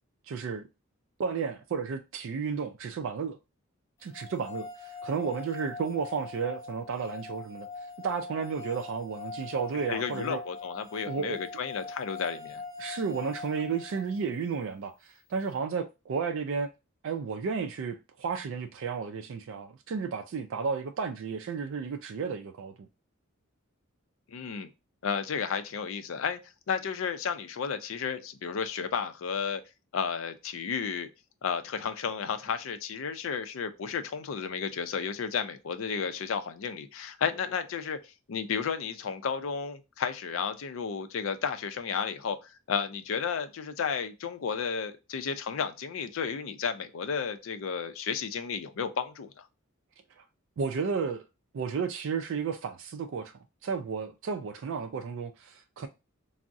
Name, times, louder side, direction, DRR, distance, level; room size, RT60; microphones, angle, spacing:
voice 1, 0.3-0.6 1.2-3.4 4.0-7.7 8.0-10.4 11.1-11.4 12.8-16.7 17.0-22.9 50.2-50.3 50.6-51.2 51.5-53.3 53.6-55.9, right 5 dB, 65° right, 0.3 m, -33 dB
sound 1, 4.1-14.3, left 4 dB, 15° left, 1.8 m, -42 dB
voice 2, 9.9-12.6 24.3-24.7 25.0-26.4 26.7-29.6 29.9-31.1 31.4-49.4, left 6 dB, 70° left, 0.4 m, -33 dB
3.4 x 2.0 x 2.6 m
head